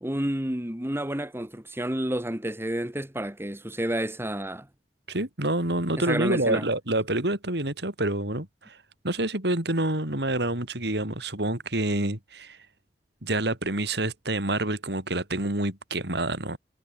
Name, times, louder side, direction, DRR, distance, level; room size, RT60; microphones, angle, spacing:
voice 1, 0.0-4.7 6.0-6.6, right 1 dB, 15° right, 1.7 m, -30 dB
voice 2, 5.1-8.8 9.0-12.6 13.2-16.6, right 1 dB, 70° right, 4.6 m, -27 dB
head